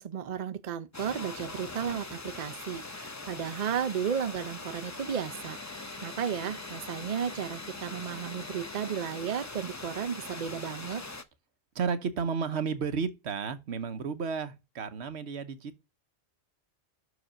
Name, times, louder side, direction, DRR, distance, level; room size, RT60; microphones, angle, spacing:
voice 1, 0.0-5.6 6.0-11.0, right 8 dB, 45° right, 0.7 m, -34 dB
sound 1, 0.9-11.2, left 3 dB, 20° left, 0.6 m, -42 dB
voice 2, 11.7-15.8, right 5 dB, 80° right, 1.2 m, -32 dB
6.2 x 4.9 x 6.2 m
omnidirectional pair, 1.1 m